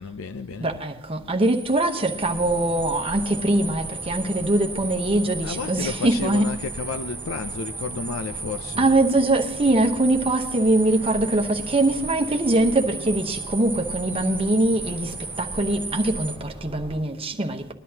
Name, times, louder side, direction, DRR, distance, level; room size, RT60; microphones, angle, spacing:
voice 1, 0.0-0.7 5.4-8.9, left 4 dB, 75° left, 0.5 m, -32 dB
voice 2, 0.6-6.5 8.8-17.7, right 2 dB, 25° right, 1.0 m, -22 dB
sound 1, 1.4-16.4, right 4 dB, 10° right, 0.7 m, -35 dB
sound 2, 2.2-17.0, right 1 dB, 30° left, 3.1 m, -41 dB
21.0 x 11.0 x 2.8 m
head